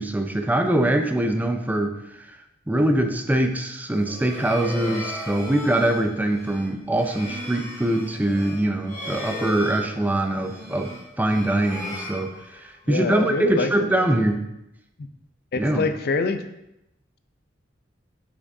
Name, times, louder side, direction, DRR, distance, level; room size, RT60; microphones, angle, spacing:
voice 1, 0.0-2.3 2.7-14.4 15.5-15.9, right 1 dB, 10° right, 5 dB, 0.4 m, -23 dB
sound 1, 3.8-12.9, left 1 dB, 15° left, 1.3 m, -37 dB
voice 2, 12.9-14.0 15.0-15.1 15.5-16.4, left 4 dB, 55° left, 9 dB, 0.5 m, -26 dB
6.1 x 5.9 x 2.6 m, 0.87 s
head